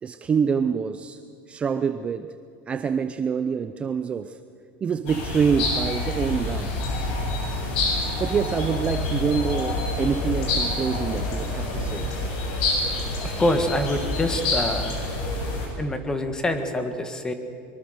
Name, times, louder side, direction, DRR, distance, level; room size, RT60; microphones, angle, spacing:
voice 1, 0.0-1.2 1.5-2.3 2.7-4.4 4.8-6.8 8.0-12.1, right 6 dB, 20° right, 9 dB, 0.6 m, -26 dB
sound 1, 5.1-15.7, left 2 dB, 70° left, 7.5 m, -27 dB
voice 2, 13.2-15.0 15.8-17.3, left 1 dB, 10° left, 7 dB, 1.8 m, -25 dB
23.5 x 22.5 x 6.6 m, 2.4 s
supercardioid pair, 150°, 6 cm